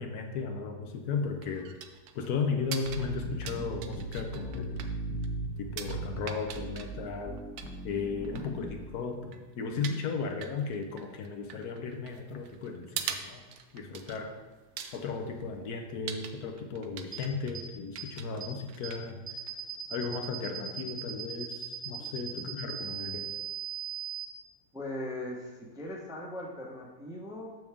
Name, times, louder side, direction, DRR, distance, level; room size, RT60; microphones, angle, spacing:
voice 1, 0.0-1.7 2.1-4.7 5.6-7.4 7.8-13.4 13.7-14.4 14.9-19.2 19.9-23.3, left 5 dB, 70° left, 4 dB, 1.2 m, -35 dB
sound 1, 0.9-19.9, right 8 dB, 70° right, 1.0 m, -45 dB
sound 2, 2.8-8.8, right 2 dB, 55° left, 1.8 m, -38 dB
sound 3, 17.1-17.2 17.5-17.6 18.0-18.1 18.4-18.5 18.8-18.9 19.3-24.3, right 9 dB, 30° right, 1.1 m, -38 dB
voice 2, 24.7-27.5, left 1 dB, 5° right, -2 dB, 0.6 m, -39 dB
7.0 x 6.2 x 3.5 m, 1.3 s
omnidirectional pair, 1.8 m